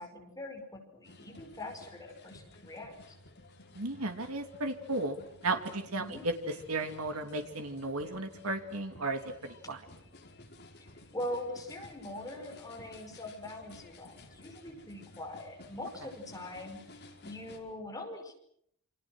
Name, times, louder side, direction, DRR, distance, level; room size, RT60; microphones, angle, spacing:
voice 1, 0.0-2.9 6.0-6.2 10.8-16.8 17.2-18.3, left 1 dB, 15° left, 3 dB, 5.2 m, -42 dB
sound 1, 1.0-17.6, left 2 dB, 50° left, 4.7 m, -54 dB
voice 2, 3.7-5.2 5.4-6.3 6.7-9.8, right 2 dB, 85° right, 6 dB, 2.8 m, -34 dB
28.0 x 26.5 x 6.4 m, 0.71 s
head